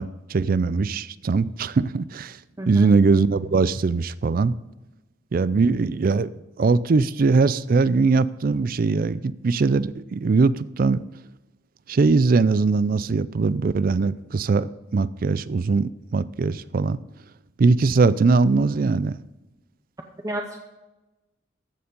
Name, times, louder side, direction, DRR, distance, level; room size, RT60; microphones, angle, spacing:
voice 1, 0.0-2.4 2.7-4.5 5.3-6.3 6.6-11.0 11.9-17.0 17.6-19.2, right 4 dB, 45° right, 0.4 m, -21 dB
voice 2, 2.6-2.9 20.2-20.6, right 1 dB, 15° right, 0.7 m, -31 dB
14.0 x 7.0 x 5.3 m
head